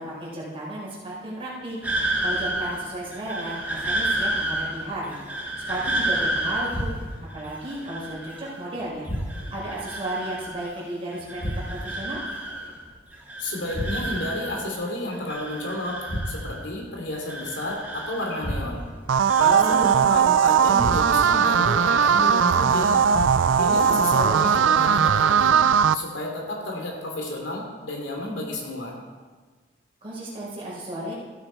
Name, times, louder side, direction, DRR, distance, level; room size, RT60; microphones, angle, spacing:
voice 1, 0.0-1.8 2.2-5.2 5.6-6.9 7.3-9.1 9.5-11.4 11.7-12.2 19.4-20.1 23.6-24.4 30.0-31.2, right 1 dB, 30° right, -6 dB, 4.6 m, -33 dB
sound 1, 1.8-8.8 9.1-10.8 11.1-12.9 13.1-14.8 15.1-16.8 17.1-18.8 19.1-19.9, right 1 dB, 10° right, 2.0 m, -31 dB
sound 2, 6.7-7.3 9.0-9.7 11.4-12.0 13.7-14.4 16.1-16.7 18.4-19.0 20.8-21.4 23.1-23.7, equal, 40° left, 1.8 m, -32 dB
voice 2, 13.4-18.8 19.4-23.0 23.6-25.6 25.9-29.0, left 1 dB, 70° left, 0 dB, 3.0 m, -31 dB
sound 3, 19.1-25.9, right 7 dB, 75° right, 0.4 m, -19 dB
15.0 x 9.7 x 4.6 m, 1.4 s
head